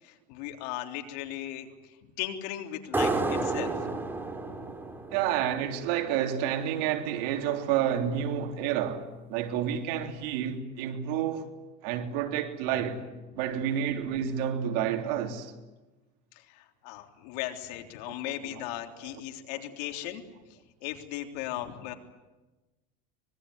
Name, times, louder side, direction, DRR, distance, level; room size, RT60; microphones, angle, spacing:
voice 1, 0.0-3.9 4.5-4.6 16.3-20.2 20.8-21.9, left 13 dB, 75° left, 3.4 m, -37 dB
sound 1, 2.9-6.2, right 3 dB, 10° right, 2.7 m, -31 dB
voice 2, 5.1-9.0 9.3-11.5 11.8-13.0 13.4-15.5 18.4-18.6, right 9 dB, 75° right, 3.4 m, -29 dB
24.5 x 22.0 x 9.8 m
supercardioid pair, 140°, 21 cm